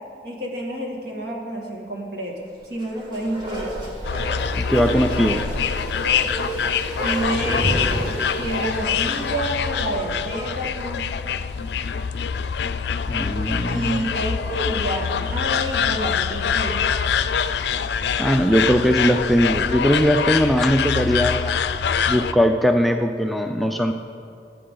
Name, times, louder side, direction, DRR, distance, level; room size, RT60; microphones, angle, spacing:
voice 1, 0.2-2.3 2.6-3.7 7.0-7.8 8.4-11.0 13.6-16.8, right 1 dB, 65° right, -1 dB, 2.2 m, -28 dB
Bark, 2.7-10.3 10.6-10.7, equal, 25° right, 2.6 m, -30 dB
sound 1, 4.0-22.3, left 7 dB, 70° left, 0.4 m, -25 dB
voice 2, 4.6-5.5 13.1-14.1 18.2-21.5 22.1-23.9, equal, ahead, 4 dB, 0.3 m, -20 dB
19.0 x 8.7 x 3.9 m, 2.4 s
head